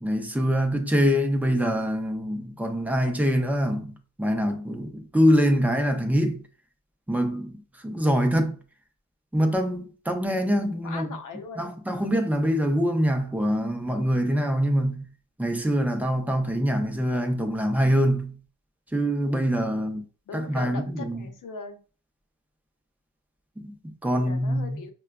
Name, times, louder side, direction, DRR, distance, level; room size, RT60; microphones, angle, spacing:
voice 1, 0.0-6.4 7.1-8.6 9.3-11.1 11.6-15.1 15.4-18.4 18.9-20.0 20.3-21.2 23.6-24.8, equal, 5° right, 0.5 m, -24 dB
voice 2, 10.8-11.7 19.6-21.8 24.1-24.9, left 4 dB, 50° left, 0.8 m, -40 dB
5.5 x 2.2 x 2.3 m
cardioid pair, 120°, 40 cm